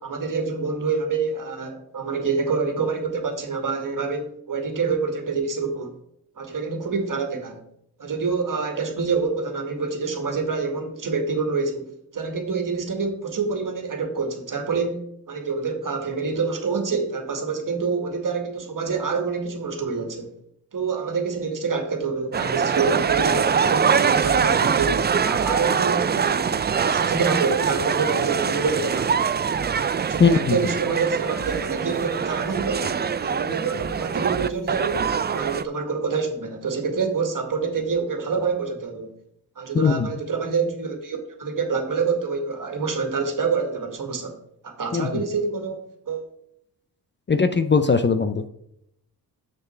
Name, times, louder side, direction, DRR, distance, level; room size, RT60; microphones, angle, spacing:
voice 1, 0.0-5.9 6.4-7.6 8.0-20.3 20.7-29.1 30.0-39.1 39.6-44.4 44.6-46.3, right 4 dB, 55° right, 4 dB, 1.9 m, -27 dB
sound 1, 22.3-35.6, right 6 dB, 25° right, 0.4 m, -23 dB
voice 2, 30.2-30.6 39.7-40.1 44.9-45.2 47.3-48.4, left 5 dB, 30° left, 10 dB, 0.6 m, -19 dB
6.9 x 6.4 x 4.5 m, 0.76 s
cardioid pair, 60°, 39 cm